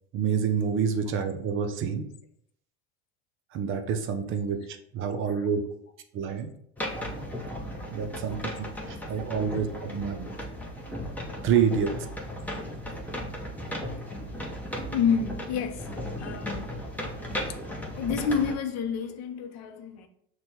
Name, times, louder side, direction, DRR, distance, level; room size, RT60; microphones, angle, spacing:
voice 1, 0.1-2.1 3.5-5.6 6.1-6.5 7.9-10.3 11.4-11.9, right 7 dB, 40° right, 0.5 m, -28 dB
sound 1, 6.8-18.5, equal, 5° left, 0.7 m, -36 dB
voice 2, 14.9-15.8 16.2-16.7 18.0-20.1, left 6 dB, 55° left, 0.6 m, -28 dB
6.0 x 2.2 x 2.8 m
supercardioid pair, 115°, 32 cm